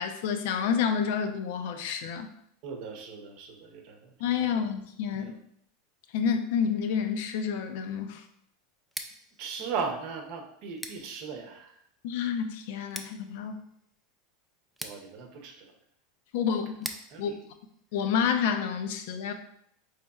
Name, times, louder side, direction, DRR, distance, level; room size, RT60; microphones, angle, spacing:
voice 1, 0.0-2.3 4.2-5.3 6.1-8.2 12.0-13.6 16.3-16.7 17.2-17.3 17.9-19.3, left 7 dB, 70° left, 7 dB, 0.4 m, -29 dB
voice 2, 2.6-4.1 4.5-4.6 5.2-5.3 9.4-11.8 14.8-15.7 16.5-16.6 17.1-17.4, right 5 dB, 60° right, 3 dB, 0.7 m, -38 dB
Scissors, 8.8-18.6, right 1 dB, 5° right, 0.4 m, -47 dB
4.1 x 3.2 x 2.3 m, 0.72 s
supercardioid pair, 110°, 0 cm